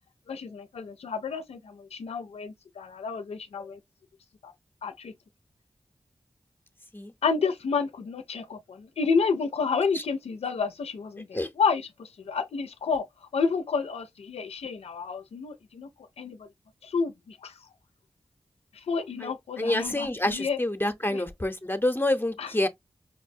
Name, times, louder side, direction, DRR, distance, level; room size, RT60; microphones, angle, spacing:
voice 1, 0.3-3.8 4.4-4.5 4.8-5.1 7.2-15.9 16.2-16.4 16.8-17.5 18.7-20.6 21.1-21.2 22.4-22.7, left 5 dB, 90° left, 0.4 m, -30 dB
voice 2, 19.6-22.7, left 1 dB, 20° left, 0.6 m, -27 dB
5.3 x 2.1 x 2.6 m
cardioid pair, 40°, 10 cm